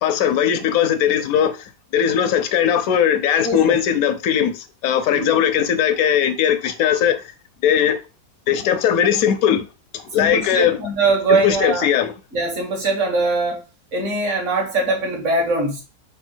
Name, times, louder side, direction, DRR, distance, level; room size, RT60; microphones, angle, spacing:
voice 1, 0.0-7.3 7.6-8.0 8.5-9.6 9.9-10.8 11.3-12.1, left 9 dB, 70° left, 0.9 m, -19 dB
voice 2, 3.4-3.8 5.1-5.3 10.1-11.9 12.3-13.6 13.9-15.8, right 3 dB, 50° right, 1.4 m, -21 dB
3.5 x 2.4 x 4.4 m
omnidirectional pair, 1.8 m